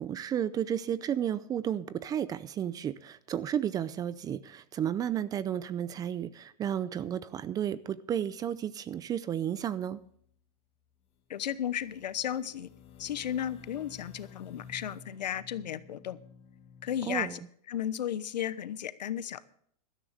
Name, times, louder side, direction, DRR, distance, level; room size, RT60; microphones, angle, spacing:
voice 1, 0.0-10.0 17.1-17.4, right 9 dB, 15° right, 17 dB, 0.5 m, -32 dB
sound 1, 9.7-10.3 10.9-11.0 11.3-17.2, left 6 dB, 25° left, 1.4 m, -53 dB
voice 2, 11.3-12.7 13.0-16.2 16.8-17.4 17.7-19.5, left 10 dB, 85° left, 15 dB, 1.0 m, -34 dB
16.5 x 13.0 x 3.4 m, 0.63 s
hypercardioid pair, 140°, 21 cm